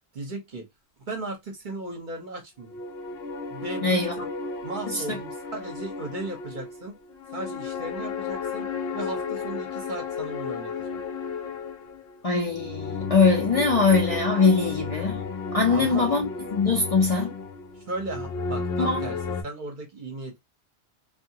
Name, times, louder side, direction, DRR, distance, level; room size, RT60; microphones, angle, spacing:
voice 1, 0.1-0.7 1.1-2.7 3.5-4.3 4.6-7.0 7.3-8.7 8.9-11.0 15.7-16.1 17.7-19.2 19.4-20.4, right 2 dB, 50° right, 0.9 m, -36 dB
sound 1, 2.7-19.4, left 4 dB, 70° left, 0.9 m, -33 dB
voice 2, 3.8-4.1 4.9-5.2 12.2-15.2 15.5-17.3 18.8-19.0, left 4 dB, 40° left, 0.6 m, -22 dB
2.7 x 2.4 x 2.7 m
omnidirectional pair, 1.1 m